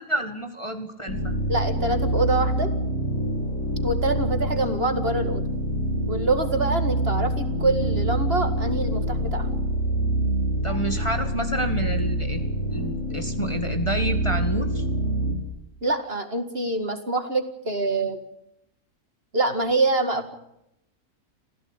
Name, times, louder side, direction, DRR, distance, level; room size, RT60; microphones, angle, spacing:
voice 1, 0.0-1.3 10.6-14.9, right 1 dB, 20° left, 6 dB, 1.9 m, -29 dB
sound 1, 1.1-15.3, right 1 dB, 70° left, 6.3 m, -26 dB
voice 2, 1.5-2.7 3.8-5.4 6.1-9.5 15.8-18.2 19.3-20.3, right 2 dB, 40° right, 8 dB, 2.2 m, -25 dB
26.5 x 16.0 x 8.9 m, 0.83 s
omnidirectional pair, 1.6 m